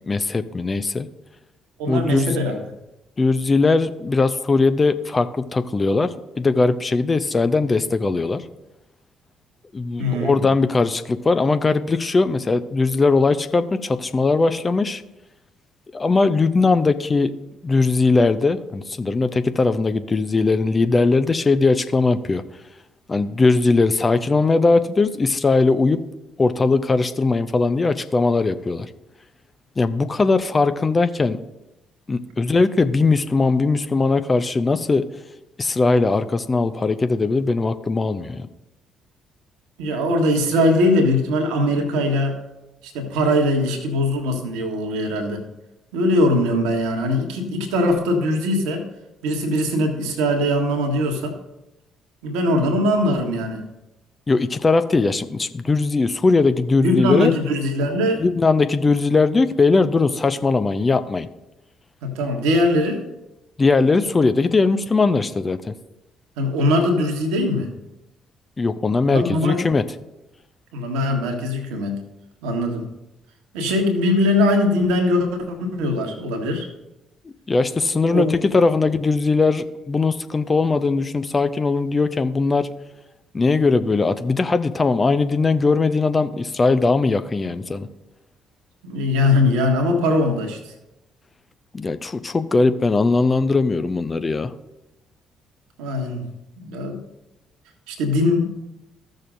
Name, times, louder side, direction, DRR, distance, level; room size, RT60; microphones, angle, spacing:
voice 1, 0.1-1.1 1.9-2.4 3.2-8.4 9.7-15.0 15.9-17.4 17.6-22.4 23.1-26.0 26.4-28.9 29.8-31.4 32.1-35.1 35.6-38.5 54.3-57.3 58.2-61.3 63.6-65.7 68.6-69.8 77.5-82.7 83.3-87.9 91.7-94.5, left 3 dB, 25° left, 11 dB, 0.6 m, -19 dB
voice 2, 1.8-2.6 10.0-10.4 39.8-42.4 42.9-45.4 45.9-48.8 49.2-51.4 52.2-53.6 56.8-58.2 62.0-63.0 66.4-67.7 69.1-69.6 70.7-72.0 72.4-72.9 73.5-76.7 77.9-78.3 88.8-90.7 95.8-96.2 96.6-97.0 97.9-98.5, left 1 dB, 65° right, 4 dB, 1.5 m, -21 dB
15.0 x 6.4 x 2.6 m, 0.94 s
figure-of-eight pair, 45°, 0 cm